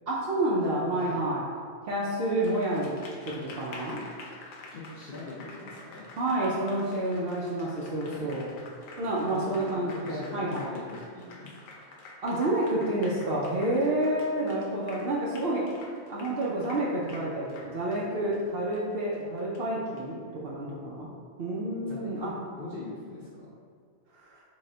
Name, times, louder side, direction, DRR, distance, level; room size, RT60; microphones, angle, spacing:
voice 1, 0.1-1.4 1.8-4.0 6.2-8.5 9.0-10.7 12.2-15.7 16.1-21.1 21.4-22.3 24.3-24.4, right 1 dB, 60° right, -5 dB, 0.6 m, -29 dB
voice 2, 0.9-1.3 4.7-6.1 8.0-8.3 9.3-9.7 10.0-11.6 21.9-23.5, left 2 dB, 60° left, -5 dB, 0.6 m, -42 dB
Applause, 2.3-20.0, left 3 dB, 85° left, 1.0 m, -48 dB
3.9 x 2.1 x 3.7 m, 2.1 s
omnidirectional pair, 1.3 m